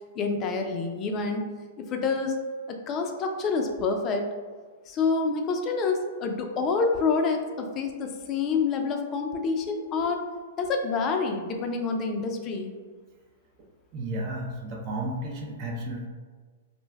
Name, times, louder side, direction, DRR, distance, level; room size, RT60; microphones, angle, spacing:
voice 1, 0.1-1.4 1.8-2.4 2.7-4.3 4.9-10.2 10.6-12.7, left 4 dB, 30° left, 4 dB, 0.4 m, -27 dB
voice 2, 13.9-16.1, right 1 dB, 40° right, 0 dB, 0.5 m, -33 dB
2.5 x 2.1 x 3.2 m, 1.5 s
hypercardioid pair, 120°, 0 cm